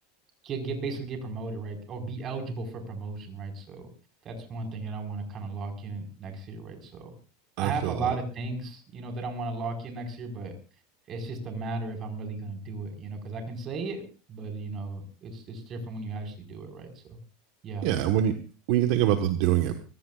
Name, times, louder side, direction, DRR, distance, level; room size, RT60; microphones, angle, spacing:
voice 1, 0.4-3.9 4.2-7.1 7.6-10.5 11.1-14.0 14.3-17.2 17.6-17.8, right 3 dB, 35° right, 4 dB, 4.9 m, -35 dB
voice 2, 7.6-8.2 17.8-19.8, right 11 dB, 60° right, 7 dB, 1.4 m, -25 dB
25.5 x 16.5 x 2.5 m, 0.33 s
supercardioid pair, 130°, 0 cm